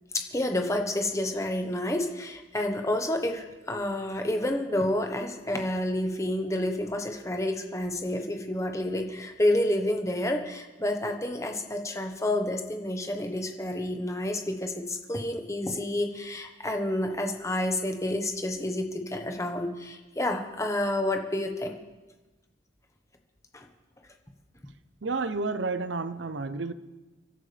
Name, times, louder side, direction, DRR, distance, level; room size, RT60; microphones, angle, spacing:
voice 1, 0.1-21.8 23.5-23.7, left 1 dB, 15° left, 1.2 m, -29 dB
voice 2, 25.0-26.7, right 3 dB, 75° right, 0.8 m, -30 dB
30.0 x 12.5 x 3.4 m
head